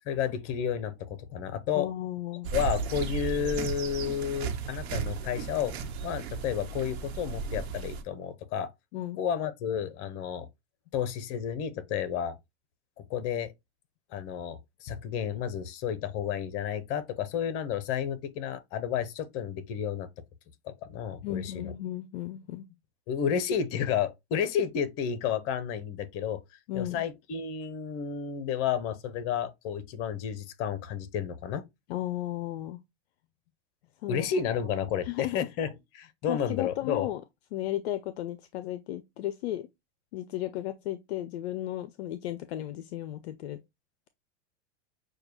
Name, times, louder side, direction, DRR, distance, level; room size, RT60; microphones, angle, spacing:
voice 1, 0.1-1.9 2.5-5.7 6.0-8.7 9.2-10.5 10.9-12.3 13.1-13.5 14.1-20.1 20.6-21.7 23.1-26.4 26.7-31.6 34.1-37.1, left 8 dB, 45° left, 0.8 m, -31 dB
voice 2, 1.7-2.5 8.9-9.2 21.2-22.6 26.7-27.0 31.9-32.8 34.0-34.3 35.0-35.5 36.3-37.2 37.5-39.7 40.1-43.6, left 13 dB, 65° left, 0.5 m, -34 dB
sound 1, 2.4-8.0, right 5 dB, 65° right, 1.1 m, -34 dB
6.3 x 2.3 x 3.0 m
hypercardioid pair, 110°, 34 cm